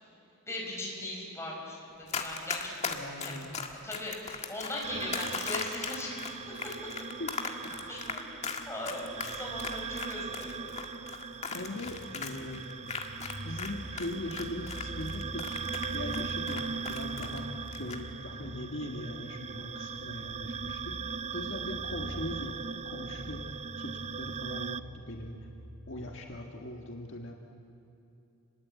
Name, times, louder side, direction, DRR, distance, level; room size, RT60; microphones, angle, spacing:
voice 1, 0.5-3.4 3.8-6.2 6.6-6.7 7.9-8.2 8.7-10.6 21.3-21.4, left 1 dB, 15° left, -2 dB, 5.8 m, -39 dB
Run, 2.1-13.7 14.0-17.4 17.7-18.0, left 5 dB, 35° left, 1.8 m, -37 dB
voice 2, 2.9-3.6 7.2-7.3 7.6-7.8 11.5-12.6 13.4-15.6 15.9-25.5 25.9-27.4, left 1 dB, 65° left, 1 dB, 1.8 m, -40 dB
sound 1, 4.8-24.8, right 5 dB, 35° right, 0.5 m, -40 dB
sound 2, 11.9-26.2, equal, 50° right, 3.0 m, -46 dB
28.5 x 21.5 x 8.5 m, 2.8 s
head